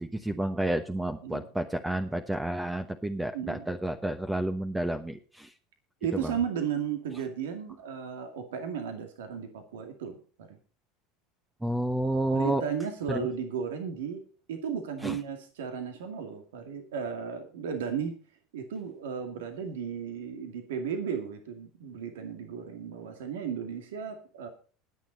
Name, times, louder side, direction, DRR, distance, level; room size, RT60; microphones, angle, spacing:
voice 1, 0.0-5.5 6.1-6.4 11.6-12.6 13.1-13.3 15.0-15.2, right 1 dB, 10° right, 8 dB, 1.0 m, -30 dB
voice 2, 3.3-3.7 6.0-10.6 12.3-14.2 14.5-18.2 18.5-24.5, right 7 dB, 80° right, 6 dB, 2.1 m, -35 dB
20.0 x 7.3 x 4.0 m, 0.37 s
hypercardioid pair, 85°, 0 cm